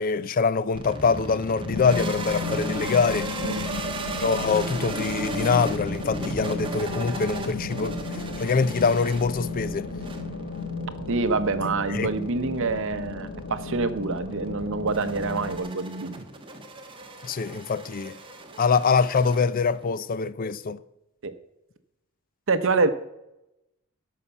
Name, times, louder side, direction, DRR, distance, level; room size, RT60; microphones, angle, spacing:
voice 1, 0.0-3.3 4.2-8.0 8.4-9.9 11.9-12.1 17.2-18.2 18.6-20.8, left 5 dB, 40° left, 0.4 m, -24 dB
sound 1, 0.7-19.9, right 2 dB, 25° right, 1.2 m, -37 dB
sound 2, 1.6-15.6, left 3 dB, 60° left, 1.0 m, -34 dB
voice 2, 11.1-16.3 21.2-21.3 22.5-22.9, right 3 dB, 65° right, 0.8 m, -26 dB
12.0 x 5.8 x 6.9 m
head